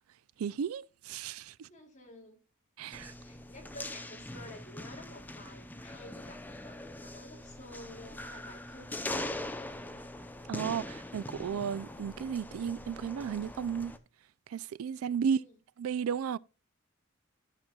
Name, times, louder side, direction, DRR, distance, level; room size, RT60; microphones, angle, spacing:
voice 1, 0.4-1.7 2.8-3.1 10.5-13.9 14.5-15.4 15.8-16.4, right 7 dB, 85° right, 0.4 m, -34 dB
voice 2, 1.7-2.4 3.2-9.4 15.0-15.6, left 1 dB, 35° left, 2.5 m, -51 dB
sound 1, 2.9-14.0, left 1 dB, 10° left, 0.6 m, -42 dB
14.0 x 6.0 x 2.3 m
head